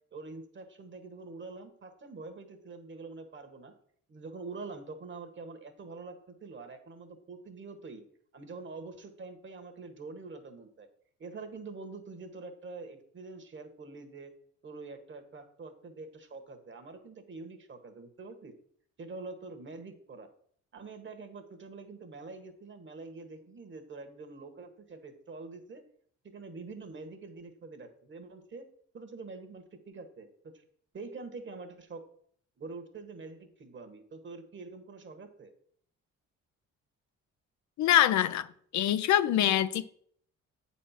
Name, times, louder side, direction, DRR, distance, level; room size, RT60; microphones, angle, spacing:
voice 1, 0.1-3.7 4.1-8.0 8.3-10.9 11.2-14.3 14.6-18.5 19.0-20.3 20.7-25.8 26.2-28.6 28.9-30.3 30.5-30.6 30.9-32.0 32.6-35.5, right 3 dB, 40° right, 1.4 m, -45 dB
voice 2, 37.8-38.5 38.7-39.9, left 11 dB, 70° left, 0.5 m, -24 dB
8.0 x 4.3 x 5.8 m
cardioid pair, 90°, 30 cm